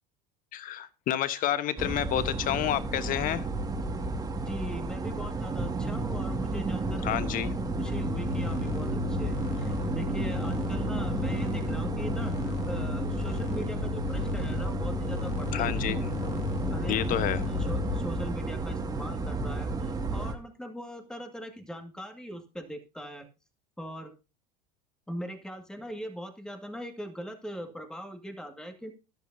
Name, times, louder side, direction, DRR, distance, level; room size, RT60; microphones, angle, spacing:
voice 1, 0.5-3.5 7.0-7.5 15.5-16.1 16.9-17.4, left 11 dB, 45° left, 14 dB, 1.2 m, -29 dB
sound 1, 1.8-20.4, right 3 dB, 20° right, 2.1 m, -32 dB
voice 2, 4.5-7.2 7.7-12.4 12.7-15.8 16.7-17.2 17.5-23.3 23.8-24.1 25.1-28.9, equal, 5° left, 5 dB, 2.0 m, -40 dB
sound 2, 7.8-18.0, left 16 dB, 65° left, 1.6 m, -35 dB
14.0 x 11.0 x 2.7 m, 0.30 s
supercardioid pair, 105°, 19 cm